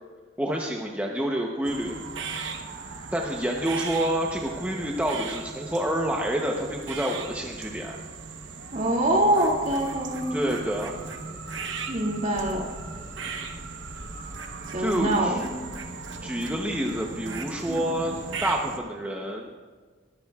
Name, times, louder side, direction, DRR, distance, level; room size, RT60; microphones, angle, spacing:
voice 1, 0.4-2.0 3.1-8.0 10.3-10.9 14.8-15.4 16.2-18.1 18.4-19.5, right 1 dB, 10° right, 0 dB, 0.8 m, -28 dB
sound 1, 1.6-18.8, right 4 dB, 70° right, 1.0 m, -37 dB
voice 2, 8.7-10.3 11.9-12.7 14.7-15.5 17.7-17.9, right 1 dB, 40° right, -2 dB, 2.3 m, -24 dB
21.0 x 14.0 x 2.4 m, 1.5 s
head